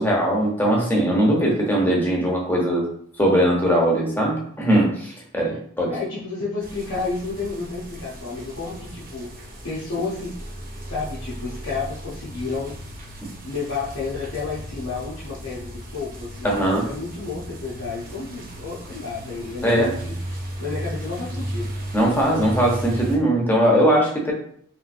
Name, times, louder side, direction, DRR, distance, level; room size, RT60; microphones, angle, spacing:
voice 1, 0.0-2.9 3.2-5.9 16.4-16.9 19.6-19.9 21.9-24.3, right 1 dB, 10° left, -2 dB, 0.8 m, -20 dB
voice 2, 5.9-10.4 10.9-12.8 13.4-21.8, left 4 dB, 90° left, -8 dB, 0.8 m, -31 dB
sound 1, 6.6-23.2, right 1 dB, 45° right, 0.8 m, -35 dB
3.2 x 3.1 x 2.5 m, 0.62 s
head